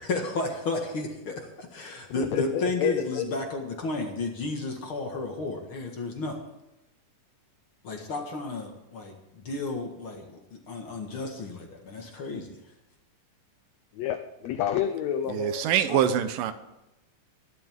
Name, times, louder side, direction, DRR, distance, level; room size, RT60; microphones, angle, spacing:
voice 1, 0.0-6.4 7.8-12.6, left 3 dB, 45° left, 2.1 m, -32 dB
voice 2, 2.2-3.2 14.0-15.7, left 10 dB, 75° left, 1.7 m, -29 dB
voice 3, 15.3-16.5, right 9 dB, 85° right, 2.6 m, -24 dB
21.5 x 11.5 x 3.7 m
omnidirectional pair, 3.9 m